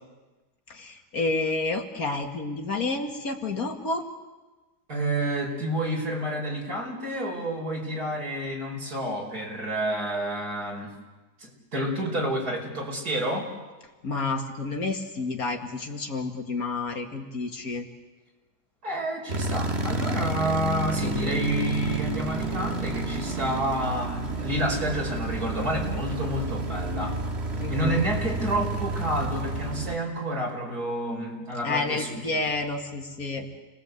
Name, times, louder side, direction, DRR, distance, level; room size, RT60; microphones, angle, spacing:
voice 1, 0.7-4.1 14.0-17.9 27.6-28.2 31.6-33.5, left 3 dB, 65° left, 3 dB, 2.6 m, -30 dB
voice 2, 4.9-10.9 11.4-13.5 18.8-27.2 27.7-32.2, right 1 dB, 70° right, 0 dB, 6.0 m, -29 dB
sound 1, 19.3-30.0, right 2 dB, 40° right, 2.0 m, -30 dB
29.5 x 21.5 x 8.3 m, 1.2 s
omnidirectional pair, 1.7 m